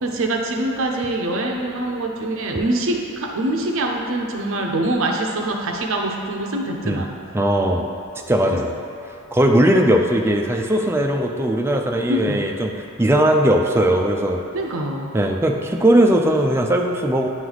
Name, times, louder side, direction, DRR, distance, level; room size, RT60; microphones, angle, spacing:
voice 1, 0.0-7.1 8.5-8.7 12.1-12.5 14.5-15.1, right 1 dB, 60° right, 1 dB, 0.6 m, -24 dB
voice 2, 7.3-7.9 8.3-8.7 9.3-12.7 13.0-14.4 15.1-17.3, right 1 dB, 10° right, 2 dB, 0.3 m, -18 dB
9.2 x 3.1 x 3.9 m, 2.7 s
head